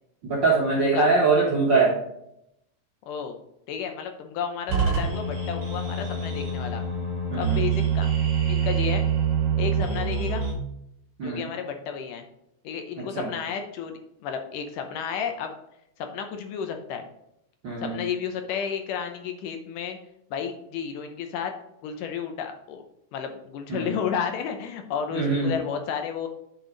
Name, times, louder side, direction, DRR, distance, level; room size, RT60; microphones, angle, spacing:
voice 1, 0.2-2.0 7.3-7.7 11.2-11.5 13.0-13.3 17.6-18.0 23.7-23.9 25.1-25.5, right 3 dB, 60° right, -4 dB, 1.2 m, -23 dB
voice 2, 0.8-1.1 3.1-3.4 3.7-6.8 7.3-8.1 8.5-9.0 9.6-10.4 11.2-12.3 12.6-15.5 16.0-17.1 17.8-20.0 20.3-21.5 21.8-22.8 23.1-26.3, left 7 dB, 75° left, 5 dB, 2.2 m, -32 dB
sound 1, 4.7-10.5, right 6 dB, 45° right, 2.1 m, -25 dB
6.6 x 6.3 x 3.9 m, 0.80 s
omnidirectional pair, 4.1 m